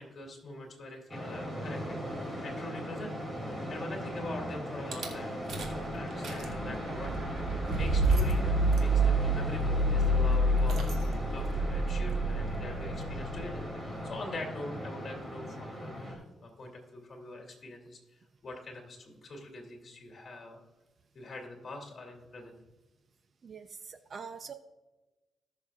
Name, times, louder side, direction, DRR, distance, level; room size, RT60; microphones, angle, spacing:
voice 1, 0.0-2.0 2.4-3.1 3.7-5.4 5.9-10.9 11.3-18.0 18.4-20.6 21.1-22.5, left 2 dB, 40° left, 1 dB, 2.9 m, -44 dB
sound 1, 1.1-16.1, equal, 10° right, 2.7 m, -38 dB
Rattle / Car / Engine starting, 4.9-5.1 5.5-5.8 6.1-13.8, right 1 dB, 65° right, 1.8 m, -28 dB
voice 2, 23.4-24.5, right 5 dB, 45° right, 10 dB, 0.6 m, -44 dB
18.5 x 6.7 x 2.4 m, 1.1 s
cardioid pair, 120°, 0 cm